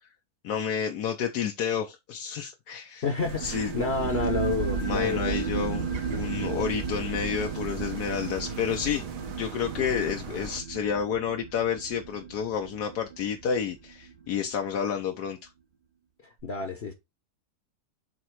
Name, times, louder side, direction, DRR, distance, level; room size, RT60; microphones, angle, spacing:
voice 1, 0.4-3.0 3.4-3.7 4.8-9.0 9.4-15.4, left 7 dB, 80° left, 1.3 m, -30 dB
voice 2, 3.0-5.4 9.8-9.9 16.4-16.9, left 4 dB, 45° left, 1.1 m, -29 dB
sound 1, 3.2-10.6, right 4 dB, 60° right, 1.4 m, -40 dB
sound 2, 3.4-14.5, right 5 dB, 40° right, 0.9 m, -34 dB
7.6 x 3.0 x 4.6 m
omnidirectional pair, 1.7 m